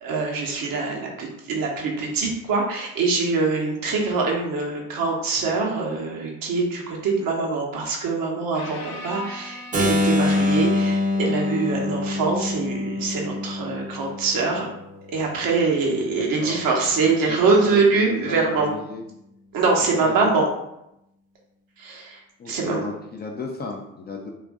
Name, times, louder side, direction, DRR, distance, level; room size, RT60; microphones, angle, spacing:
voice 1, 0.0-14.7 15.1-18.7 19.5-20.5 21.8-22.2 22.5-22.8, right 4 dB, 60° right, -1 dB, 0.8 m, -24 dB
sound 1, 8.5-11.0 14.0-14.2 16.0-16.1, left 1 dB, 80° left, 0.6 m, -39 dB
Keyboard (musical), 9.7-15.6, left 2 dB, 20° right, 0.5 m, -25 dB
voice 2, 16.2-16.6 17.0-17.4 17.7-19.0 20.0-20.3 22.4-24.3, left 3 dB, 25° left, 1 dB, 0.3 m, -34 dB
2.5 x 2.3 x 2.3 m, 0.83 s
hypercardioid pair, 55°, 39 cm